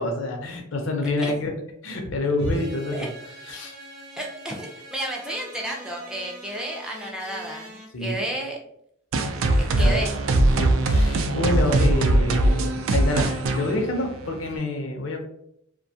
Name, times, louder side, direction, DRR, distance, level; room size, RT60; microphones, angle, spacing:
voice 1, 0.0-1.5 1.8-3.7 7.9-8.2 9.5-10.0 10.6-15.2, left 1 dB, 80° left, 3 dB, 0.6 m, -27 dB
sound 1, 2.4-7.9, right 1 dB, 55° right, 0.7 m, -43 dB
voice 2, 4.2-8.6 9.8-10.1, right 1 dB, 5° right, -1 dB, 0.3 m, -32 dB
sound 2, 9.1-14.6, right 1 dB, 90° right, 0.4 m, -21 dB
2.4 x 2.2 x 2.7 m, 0.74 s
head